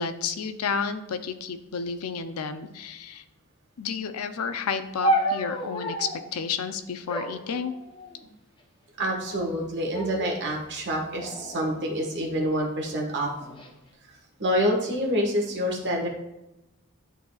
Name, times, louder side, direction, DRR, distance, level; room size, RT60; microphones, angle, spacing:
voice 1, 0.0-3.2 3.8-7.8, left 6 dB, 75° left, 10 dB, 0.5 m, -31 dB
sound 1, 5.0-6.3 7.1-8.3 9.1-9.6 9.9-10.5 11.2-12.5 13.2-13.7, right 1 dB, 25° left, 0.8 m, -31 dB
voice 2, 9.0-13.3 14.4-16.1, equal, 55° right, 0 dB, 1.4 m, -27 dB
11.0 x 4.0 x 2.4 m, 0.95 s
head